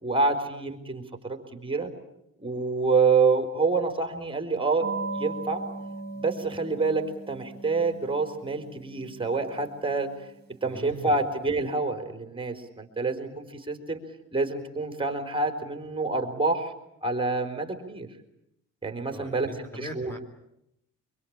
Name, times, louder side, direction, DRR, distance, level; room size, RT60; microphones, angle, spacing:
voice 1, 0.0-1.9 2.4-4.9 5.1-5.7 6.2-10.1 10.6-14.0 14.3-16.7 17.0-18.1 18.8-20.1, right 3 dB, 15° right, 5 dB, 4.1 m, -27 dB
sound 1, 4.8-11.0, right 3 dB, 35° right, 4.3 m, -39 dB
voice 2, 10.6-11.2 19.1-20.2, right 1 dB, 10° left, 5 dB, 3.4 m, -40 dB
25.5 x 23.5 x 8.8 m, 0.82 s
cardioid pair, 90°, 30 cm